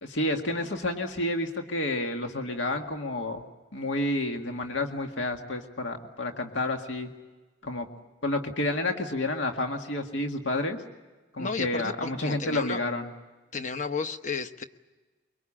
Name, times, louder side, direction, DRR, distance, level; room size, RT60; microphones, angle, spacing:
voice 1, 0.0-3.4 3.7-7.1 7.6-7.9 8.2-10.8 11.3-13.1, left 2 dB, 75° left, 4 dB, 1.9 m, -30 dB
voice 2, 11.4-12.8 13.5-14.6, left 4 dB, 40° left, 9 dB, 1.0 m, -33 dB
24.5 x 23.5 x 8.7 m, 1.2 s
head